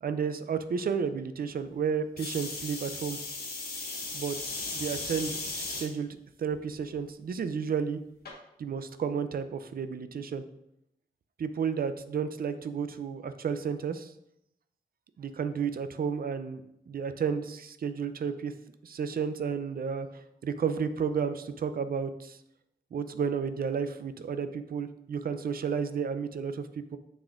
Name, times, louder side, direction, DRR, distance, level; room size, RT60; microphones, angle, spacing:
voice 1, 0.0-3.2 4.1-8.0 8.6-10.4 11.4-14.1 15.2-16.6 16.9-18.5 18.8-20.1 20.4-22.4 22.9-27.0, right 6 dB, 65° right, 11 dB, 0.5 m, -32 dB
sound 1, 2.2-5.9 6.5-7.0 8.3-8.4, left 3 dB, 70° left, 1.4 m, -36 dB
6.9 x 5.9 x 2.5 m, 0.80 s
wide cardioid pair, 135°, 17 cm